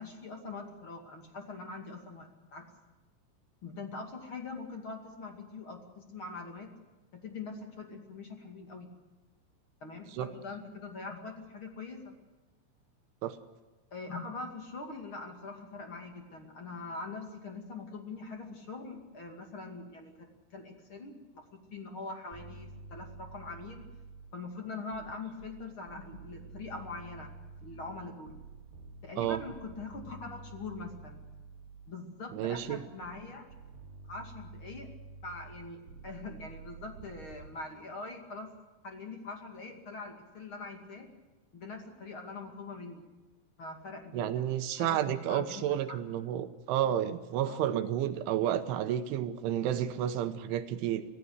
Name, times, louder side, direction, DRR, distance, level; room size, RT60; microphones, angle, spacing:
voice 1, 0.0-2.7 3.6-6.7 7.1-8.9 9.8-12.2 13.9-23.8 24.3-27.3 27.6-28.4 29.0-31.2 31.9-33.5 34.1-34.9 35.2-38.5 38.8-41.1 41.5-43.1 43.6-46.0 47.4-47.7, left 3 dB, 40° left, 4 dB, 1.9 m, -43 dB
sound 1, 22.3-24.5 24.9-32.0 32.5-37.5, right 4 dB, 50° right, 4.1 m, -50 dB
voice 2, 32.3-32.8 44.1-51.1, right 11 dB, 75° right, 10 dB, 3.2 m, -31 dB
25.5 x 16.0 x 8.0 m, 1.2 s
omnidirectional pair, 5.9 m